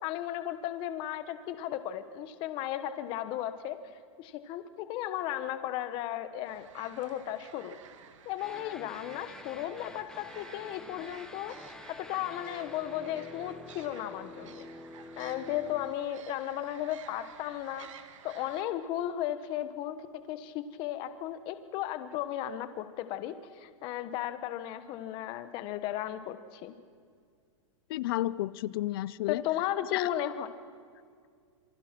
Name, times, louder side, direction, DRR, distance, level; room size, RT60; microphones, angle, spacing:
voice 1, 0.0-3.8 4.2-7.8 8.2-11.6 12.1-14.7 15.2-17.9 18.2-20.0 20.3-26.8 29.3-30.5, left 12 dB, 30° left, 11 dB, 1.2 m, -35 dB
sound 1, 6.4-18.6, right 8 dB, 70° right, 2.0 m, -53 dB
sound 2, 8.4-16.0, left 2 dB, 5° left, 0.8 m, -48 dB
voice 2, 27.9-29.4 29.9-30.1, left 15 dB, 45° left, 20 dB, 0.5 m, -31 dB
27.0 x 24.5 x 6.0 m, 2.2 s
supercardioid pair, 165°, 17 cm